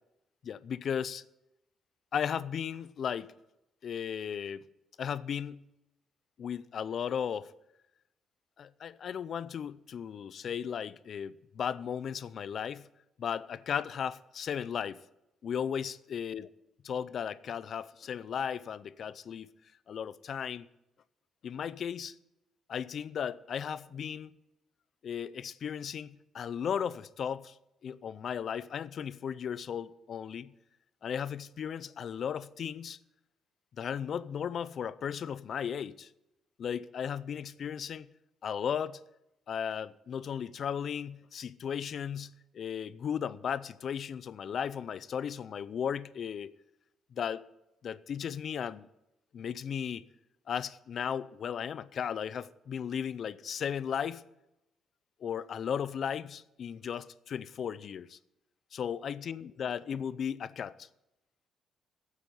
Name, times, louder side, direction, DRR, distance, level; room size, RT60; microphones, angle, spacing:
voice 1, 0.4-1.2 2.1-3.3 3.8-4.6 5.0-5.6 6.4-7.5 8.6-12.9 13.2-15.0 15.4-16.5 16.8-19.5 19.9-20.7 21.4-22.1 22.7-24.3 25.0-27.5 27.8-30.5 31.0-33.0 33.8-36.1 36.6-38.1 38.4-39.0 39.5-46.5 47.1-47.5 47.8-48.9 49.3-50.1 50.5-54.2 55.2-58.2 58.7-60.9, left 8 dB, 60° left, 0.5 m, -36 dB
9.5 x 8.3 x 9.2 m
cardioid pair, 90°, 0 cm